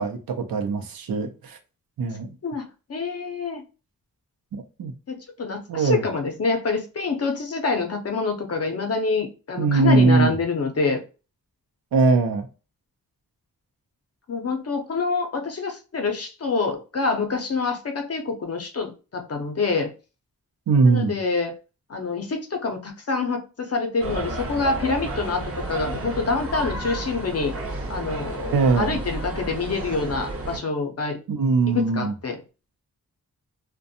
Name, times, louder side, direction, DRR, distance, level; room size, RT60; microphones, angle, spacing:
voice 1, 0.0-1.6 2.0-2.3 4.5-4.9 5.7-6.0 9.6-10.3 11.9-12.5 20.7-21.2 28.5-29.0 31.3-32.1, right 4 dB, 80° right, 0.6 m, -21 dB
voice 2, 2.4-3.6 5.1-11.0 14.3-19.9 20.8-21.5 21.9-27.5 27.9-31.2 31.7-32.4, left 4 dB, 45° left, 0.6 m, -26 dB
sound 1, 24.0-30.6, right 2 dB, 40° right, 0.7 m, -32 dB
2.5 x 2.2 x 2.6 m
wide cardioid pair, 85°, 35 cm